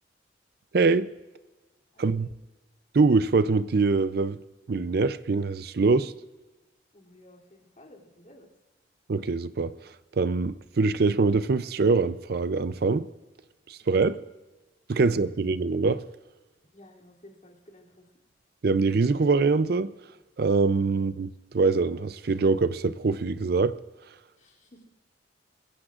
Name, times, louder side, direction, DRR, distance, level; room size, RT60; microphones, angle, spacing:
voice 1, 0.7-1.1 2.0-2.3 2.9-4.4 4.7-6.1 9.1-9.8 10.2-13.1 13.7-14.2 14.9-16.0 18.6-19.9 20.4-23.8, right 4 dB, 55° right, 0.5 m, -24 dB
voice 2, 1.9-2.4 6.9-8.5 13.8-14.2 15.0-15.1 16.7-18.1 20.9-21.1 24.4-24.9, left 1 dB, 40° left, 2.9 m, -54 dB
22.5 x 16.0 x 2.5 m
head